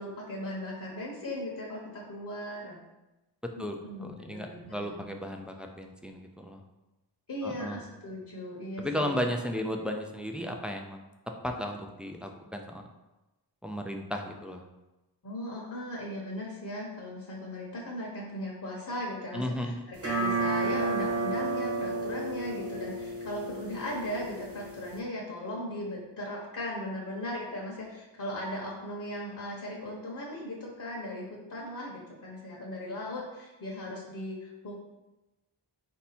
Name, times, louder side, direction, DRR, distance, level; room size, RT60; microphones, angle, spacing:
voice 1, 0.0-2.8 3.8-5.2 7.3-9.2 15.2-34.9, left 1 dB, 50° left, -4 dB, 1.0 m, -38 dB
voice 2, 3.4-6.6 7.4-7.8 8.8-11.0 11.4-12.9 13.6-14.6 19.3-19.8, equal, 5° right, 3 dB, 0.3 m, -35 dB
sound 1, 20.0-25.0, right 3 dB, 35° right, 0.7 m, -32 dB
4.5 x 2.8 x 4.1 m, 1.0 s
wide cardioid pair, 130°, 42 cm